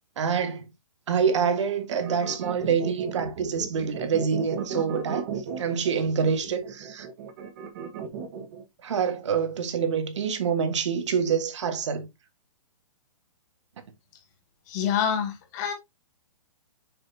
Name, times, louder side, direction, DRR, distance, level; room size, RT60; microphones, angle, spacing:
voice 1, 0.2-0.7 1.1-5.3 5.6-7.1 8.8-12.1, right 6 dB, 55° right, 1.7 m, -26 dB
sound 1, 1.9-8.6, right 7 dB, 35° right, 1.5 m, -35 dB
voice 2, 14.7-15.7, left 8 dB, 30° left, 2.2 m, -27 dB
6.9 x 6.9 x 2.8 m
hypercardioid pair, 165°, 18 cm